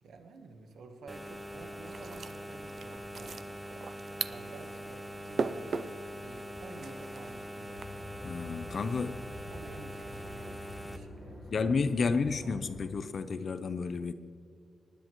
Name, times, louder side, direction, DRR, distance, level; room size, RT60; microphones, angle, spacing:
voice 1, 0.0-3.5 4.3-5.8 6.2-7.8 9.4-10.6 10.9-11.6 12.0-12.5, right 3 dB, 80° right, 1.1 m, -51 dB
sound 1, 1.1-11.0, equal, 10° right, 0.6 m, -43 dB
sound 2, 1.8-7.8, right 5 dB, 55° right, 0.4 m, -40 dB
sound 3, 7.8-12.9, left 1 dB, 10° left, 1.2 m, -47 dB
voice 2, 8.2-9.2 11.5-14.1, left 4 dB, 50° left, 0.6 m, -31 dB
19.5 x 10.5 x 3.0 m
wide cardioid pair, 120°, 0 cm